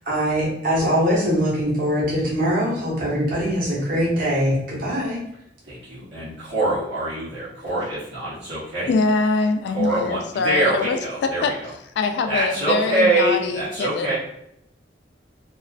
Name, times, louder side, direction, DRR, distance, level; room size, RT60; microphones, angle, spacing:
voice 1, 0.1-5.2, equal, 55° right, -6 dB, 0.9 m, -22 dB
voice 2, 5.7-8.9 9.7-11.7 12.3-14.2, right 2 dB, 85° right, -11 dB, 0.9 m, -24 dB
voice 3, 8.9-11.5 12.0-14.2, left 3 dB, 65° left, 7 dB, 0.3 m, -23 dB
2.4 x 2.3 x 2.3 m, 0.77 s
head